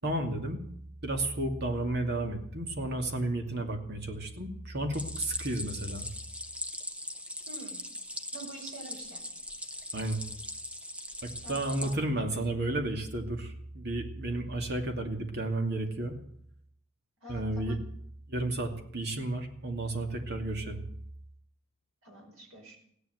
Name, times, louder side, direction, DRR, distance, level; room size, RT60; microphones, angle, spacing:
voice 1, 0.0-0.6 1.0-6.1 9.9-10.2 11.2-16.2 17.3-17.8 18.3-20.8, right 1 dB, 50° right, 4 dB, 2.5 m, -32 dB
Stream, 4.9-11.9, equal, 5° right, 1.0 m, -40 dB
voice 2, 7.5-7.8 8.3-9.3 11.4-12.2 17.2-17.8 22.0-22.8, right 2 dB, 90° right, 1 dB, 5.3 m, -47 dB
16.5 x 11.0 x 8.0 m, 0.68 s
head